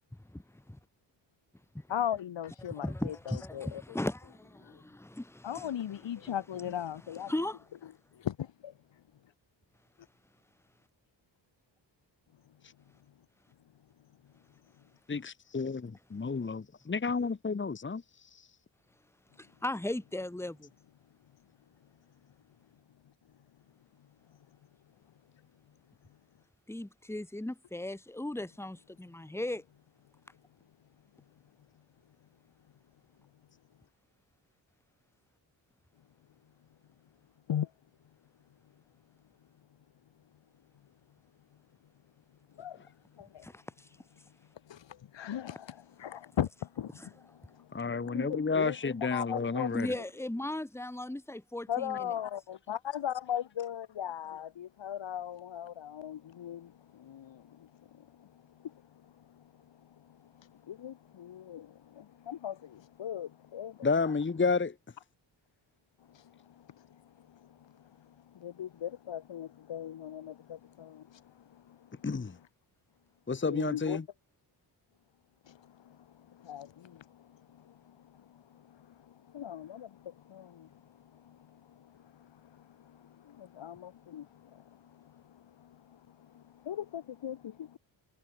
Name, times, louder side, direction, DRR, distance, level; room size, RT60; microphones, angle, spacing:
voice 1, 0.2-0.8 1.7-1.9 2.8-5.8 6.2-6.3 7.3-7.7 19.4-20.7 26.7-29.6 43.4-43.9 47.0-47.1 49.7-52.1, left 1 dB, 5° left, 2.1 m, -37 dB
voice 2, 1.9-3.8 4.6-4.8 5.4-7.3 8.1-8.7 37.5-37.7 42.5-42.9 43.1-43.5 44.6-48.8 49.1-49.8 51.7-63.9 66.1-72.0 73.5-74.0 75.4-87.8, left 10 dB, 70° left, 3.0 m, -40 dB
voice 3, 15.1-18.5 47.7-49.9 63.8-64.7 72.0-72.4 73.3-74.0, left 4 dB, 25° left, 1.5 m, -31 dB
cardioid pair, 95°, 45 cm